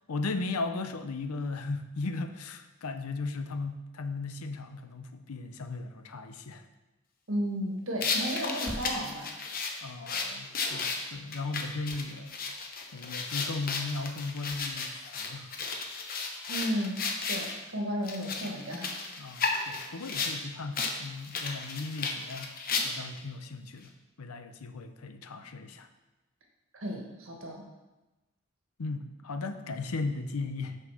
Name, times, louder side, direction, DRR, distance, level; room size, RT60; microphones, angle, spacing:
voice 1, 0.1-6.6 9.8-12.3 12.9-14.9 15.1-15.5 19.2-22.5 22.8-23.9 24.2-25.9 28.8-30.8, left 3 dB, 85° left, 9 dB, 0.6 m, -36 dB
voice 2, 7.3-9.3 16.5-17.0 17.3-18.9 26.7-27.6, equal, 65° right, 1 dB, 1.5 m, -33 dB
sound 1, 8.0-17.5 18.0-20.4 20.7-20.9 21.2-23.2, left 4 dB, 40° left, 0.8 m, -33 dB
sound 2, 8.2-9.8 11.4-11.5 11.8-12.7 13.1-13.3, equal, 15° left, 3.0 m, -45 dB
6.5 x 5.6 x 6.3 m, 1.1 s
head